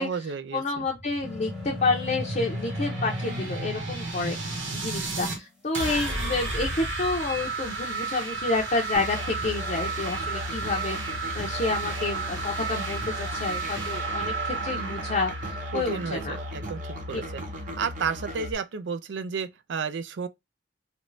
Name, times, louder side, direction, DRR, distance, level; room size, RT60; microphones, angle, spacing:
voice 1, 0.0-0.9 15.7-17.4 17.8-20.3, right 6 dB, 70° right, 0.4 m, -32 dB
voice 2, 0.5-16.4 17.1-17.2, left 3 dB, 40° left, 0.6 m, -29 dB
sound 1, 0.7-5.4 5.7-17.3, right 3 dB, 85° right, 1.0 m, -33 dB
sound 2, 1.2-3.5, left 4 dB, 5° right, 0.9 m, -38 dB
Musical instrument, 8.9-18.5, left 1 dB, 45° right, 0.9 m, -36 dB
3.0 x 2.6 x 3.1 m
head